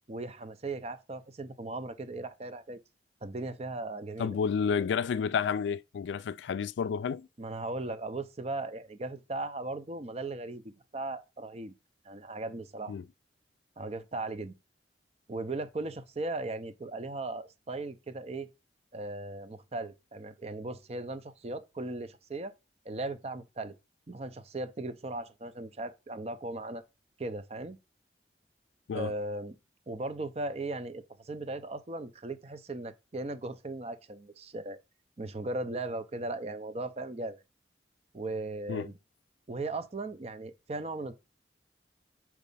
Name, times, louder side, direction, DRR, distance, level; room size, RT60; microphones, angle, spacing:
voice 1, 0.1-2.8 3.2-4.4 7.4-11.7 12.0-12.9 13.8-14.5 15.3-18.5 18.9-22.5 22.9-23.7 24.1-26.8 27.2-27.8 28.9-29.6 29.9-34.8 35.2-37.4 38.1-39.0 39.5-41.1, right 2 dB, 35° right, 0.5 m, -37 dB
voice 2, 4.2-7.3 12.9-13.0 28.9-29.1 38.7-38.9, left 6 dB, 80° left, 0.3 m, -30 dB
4.7 x 4.1 x 5.4 m
head